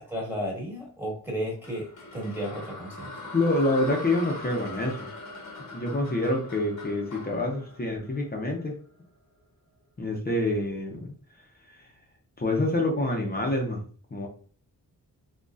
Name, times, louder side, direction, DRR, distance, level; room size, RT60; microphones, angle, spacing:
voice 1, 0.0-3.2, equal, 5° right, -3 dB, 1.3 m, -33 dB
sound 1, 1.6-8.8, left 2 dB, 55° left, 1.0 m, -41 dB
voice 2, 3.3-5.1 5.7-8.8 10.0-11.1 11.8-11.9 12.4-13.8 14.1-14.3, left 2 dB, 25° left, 1 dB, 0.7 m, -27 dB
4.0 x 2.9 x 2.4 m, 0.43 s
wide cardioid pair, 155°, 35 cm